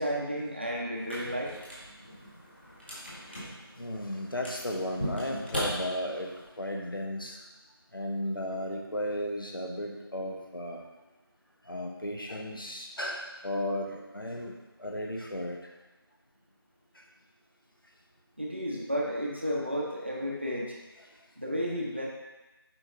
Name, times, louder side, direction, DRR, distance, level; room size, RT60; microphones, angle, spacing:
voice 1, 0.0-1.5 18.4-20.8 21.4-22.1, equal, 25° right, -3 dB, 0.9 m, -32 dB
sound 1, 0.9-6.4, equal, 25° left, 1.8 m, -39 dB
voice 2, 3.8-6.3 6.6-7.4 7.9-10.8 11.7-15.6 16.9-17.0 21.0-21.1, left 1 dB, 60° left, 0 dB, 1.3 m, -35 dB
8.3 x 5.0 x 3.8 m, 1.1 s
figure-of-eight pair, 175°, 13 cm